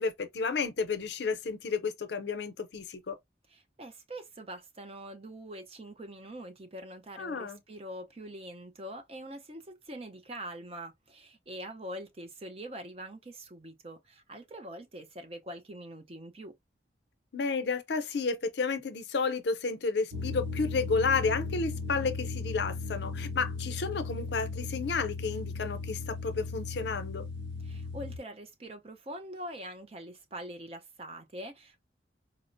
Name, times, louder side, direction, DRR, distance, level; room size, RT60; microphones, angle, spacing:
voice 1, 0.0-3.2 7.2-7.6 17.3-27.3, left 4 dB, 70° left, 0.5 m, -31 dB
voice 2, 3.5-16.5 27.6-31.8, right 1 dB, 30° right, 0.5 m, -44 dB
sound 1, 20.1-28.2, left 3 dB, 85° right, 0.8 m, -37 dB
4.1 x 2.0 x 2.5 m
head